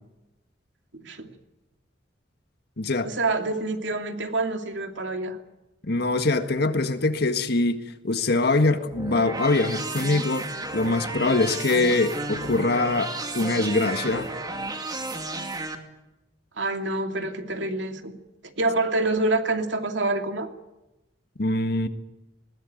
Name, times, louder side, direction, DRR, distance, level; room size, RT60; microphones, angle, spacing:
voice 1, 0.9-1.3 3.0-5.4 16.6-18.1 18.6-20.5, right 2 dB, 85° right, 5 dB, 2.7 m, -27 dB
voice 2, 2.8-3.1 5.8-7.8 8.0-10.5 10.7-14.3 21.4-21.9, left 2 dB, 60° left, 8 dB, 1.7 m, -23 dB
sound 1, 8.9-15.7, right 2 dB, 20° right, 2.5 m, -33 dB
20.5 x 19.5 x 9.3 m, 0.99 s
head